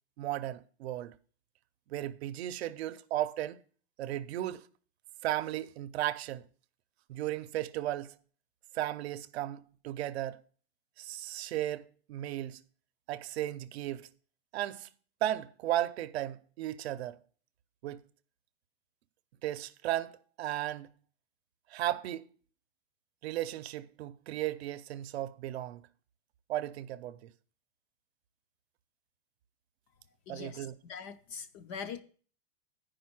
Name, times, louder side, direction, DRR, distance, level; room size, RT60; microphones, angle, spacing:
voice 1, 0.2-1.2 1.9-3.6 4.0-4.7 5.2-6.4 7.1-8.1 8.7-10.4 11.0-12.6 13.1-14.1 14.5-14.9 15.2-17.2 17.8-18.0 19.4-20.9 21.7-22.3 23.2-25.8 26.5-27.2 30.3-30.7, right 13 dB, 75° right, 0.7 m, -35 dB
voice 2, 30.3-32.0, left 6 dB, 25° left, 0.4 m, -43 dB
9.4 x 5.3 x 5.9 m
supercardioid pair, 160°, 32 cm